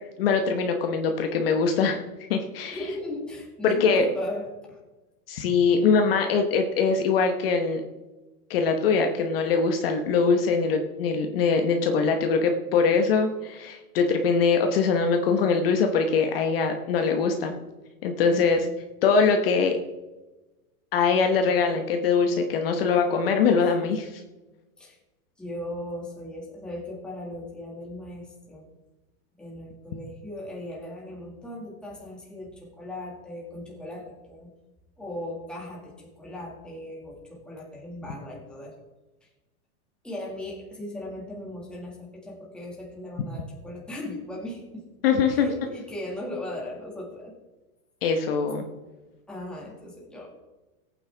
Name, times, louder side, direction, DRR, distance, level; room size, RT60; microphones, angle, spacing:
voice 1, 0.2-2.0 2.3-2.8 3.6-4.0 5.3-7.8 8.5-17.6 18.0-18.7 19.0-19.8 20.9-24.2 45.0-45.5 48.0-48.7, left 5 dB, 40° left, 4 dB, 1.1 m, -22 dB
voice 2, 2.6-4.8 18.2-18.7 24.8-25.0 25.4-28.7 29.4-34.5 35.0-38.7 40.0-44.8 45.3-47.4 49.3-50.3, left 1 dB, ahead, -4 dB, 1.8 m, -37 dB
18.5 x 8.9 x 3.4 m, 1.1 s
supercardioid pair, 180°, 44 cm